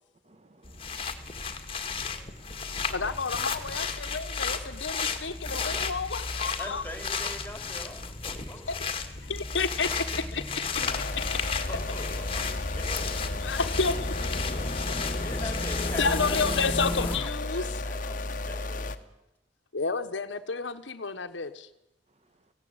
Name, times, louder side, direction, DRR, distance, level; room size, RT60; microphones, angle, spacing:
voice 1, 0.2-2.9, right 2 dB, 35° right, 1.2 m, -59 dB
sound 1, 0.6-17.2, left 4 dB, 30° left, 1.9 m, -33 dB
voice 2, 2.9-6.8 8.7-10.8 13.4-14.7 16.0-17.8 19.7-21.7, left 4 dB, 85° left, 1.3 m, -31 dB
voice 3, 6.6-8.7 11.7-13.5 14.8-19.1, left 1 dB, 10° left, 3.5 m, -43 dB
sound 2, 10.8-19.0, left 2 dB, 45° left, 1.3 m, -34 dB
18.5 x 16.0 x 8.9 m
head